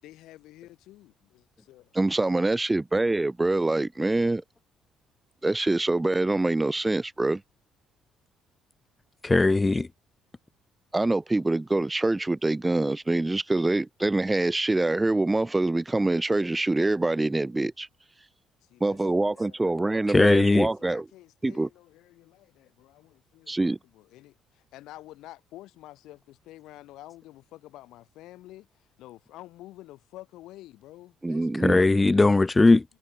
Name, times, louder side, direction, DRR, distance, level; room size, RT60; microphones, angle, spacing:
voice 1, 0.0-1.9 18.7-31.9, left 16 dB, 65° left, 6.5 m, -49 dB
voice 2, 1.9-4.4 5.4-7.4 10.9-17.9 18.8-21.0 21.4-21.7 23.5-23.8 31.2-31.8, right 2 dB, 15° right, 1.1 m, -25 dB
voice 3, 9.2-9.9 20.1-20.7 31.6-32.8, left 3 dB, 20° left, 0.3 m, -19 dB
figure-of-eight pair, 45°, 0 cm